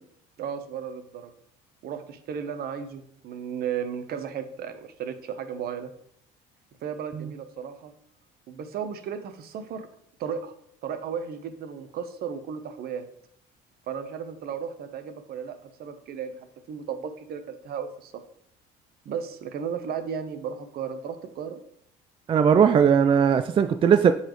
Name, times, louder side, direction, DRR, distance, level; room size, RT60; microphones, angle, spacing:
voice 1, 0.4-1.3 1.8-5.9 6.8-7.9 8.5-9.9 10.2-10.5 10.8-13.1 13.9-16.3 16.7-18.1 19.0-21.6, right 7 dB, 60° right, 10 dB, 0.9 m, -34 dB
voice 2, 22.3-24.1, right 7 dB, 30° right, 10 dB, 0.3 m, -19 dB
9.9 x 4.1 x 3.1 m, 0.69 s
supercardioid pair, 85°, 18 cm